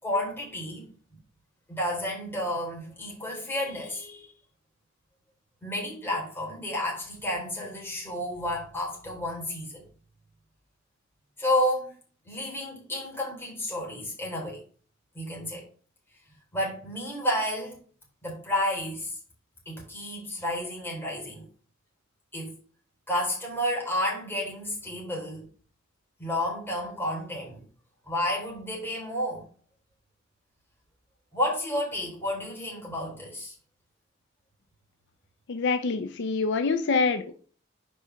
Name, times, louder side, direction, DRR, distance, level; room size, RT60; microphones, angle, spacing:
voice 1, 0.0-0.9 1.7-4.3 5.6-9.8 11.4-12.0 12.2-14.6 15.1-15.7 16.5-17.8 18.2-19.1 19.7-21.5 22.3-22.6 23.1-25.5 26.2-27.6 28.1-29.4 31.3-33.5, left 1 dB, 10° left, -3 dB, 3.7 m, -31 dB
voice 2, 35.5-37.3, left 4 dB, 60° left, 9 dB, 0.5 m, -26 dB
5.4 x 4.9 x 5.6 m, 0.42 s
head